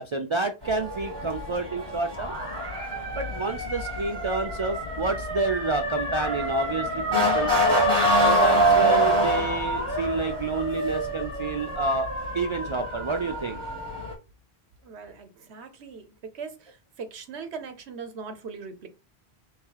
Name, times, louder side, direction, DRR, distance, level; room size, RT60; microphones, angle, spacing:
voice 1, 0.0-2.4 3.1-7.5 8.2-12.1 12.3-13.6, right 4 dB, 50° right, 0.3 m, -29 dB
Motor vehicle (road) / Siren, 0.6-14.1, equal, 25° right, 1.9 m, -26 dB
voice 2, 14.8-18.9, right 5 dB, 90° right, 1.1 m, -40 dB
3.4 x 3.2 x 4.6 m
omnidirectional pair, 1.1 m